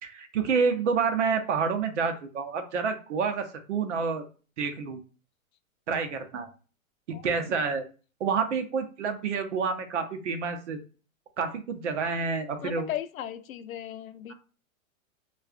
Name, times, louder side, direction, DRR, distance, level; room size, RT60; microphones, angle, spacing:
voice 1, 0.0-4.2 4.6-5.0 5.9-6.5 7.2-7.8 8.2-10.8 11.4-12.9, right 5 dB, 55° right, 0.8 m, -28 dB
voice 2, 7.1-7.4 12.6-14.3, left 11 dB, 75° left, 0.6 m, -37 dB
4.5 x 2.4 x 2.4 m
hypercardioid pair, 175°, 42 cm